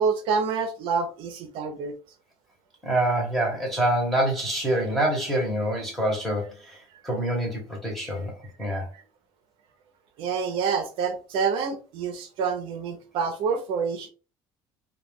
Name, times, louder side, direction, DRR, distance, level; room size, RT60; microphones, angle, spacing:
voice 1, 0.0-1.9 10.2-14.1, right 5 dB, 60° right, 0.5 m, -27 dB
voice 2, 2.8-8.3 8.6-8.9, right 1 dB, ahead, 0.9 m, -26 dB
2.2 x 2.2 x 3.4 m
cardioid pair, 175°, 10 cm